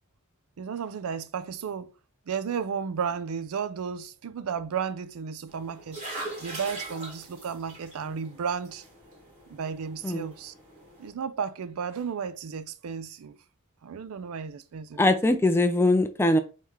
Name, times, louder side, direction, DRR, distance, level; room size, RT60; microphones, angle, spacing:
voice 1, 0.6-1.9 2.3-8.8 9.5-10.5 11.0-13.4 13.8-15.0, right 6 dB, 70° right, 0.4 m, -33 dB
sound 1, 5.5-11.1, right 2 dB, 30° right, 1.8 m, -42 dB
voice 2, 15.0-16.4, left 2 dB, 10° left, 0.5 m, -22 dB
5.7 x 3.2 x 2.9 m
head